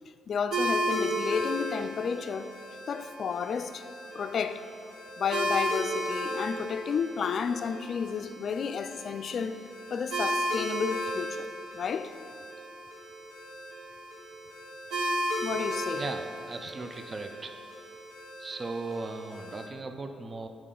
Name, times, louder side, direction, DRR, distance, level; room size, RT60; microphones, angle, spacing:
voice 1, 0.3-2.5 2.9-3.9 4.1-4.7 5.2-12.2 15.4-16.0, left 6 dB, 55° left, 0.3 m, -32 dB
sound 1, 0.5-19.7, right 1 dB, 70° right, 1.8 m, -35 dB
voice 2, 15.9-17.6 18.4-20.5, right 3 dB, 35° right, 0.5 m, -37 dB
8.4 x 4.4 x 3.8 m
cardioid pair, 90°, 0 cm